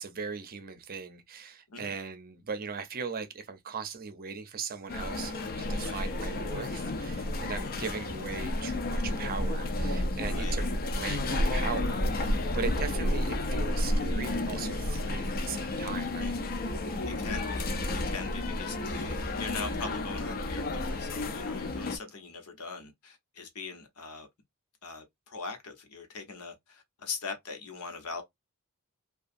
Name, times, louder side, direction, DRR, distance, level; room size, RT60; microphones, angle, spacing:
voice 1, 0.0-5.4 5.7-16.4, right 5 dB, 40° right, 0.6 m, -39 dB
sound 1, 4.9-22.0, left 1 dB, 45° left, 0.5 m, -31 dB
voice 2, 16.2-16.6 17.1-17.7 18.1-24.3 24.8-28.2, left 4 dB, 75° left, 0.9 m, -41 dB
2.7 x 2.3 x 2.5 m
head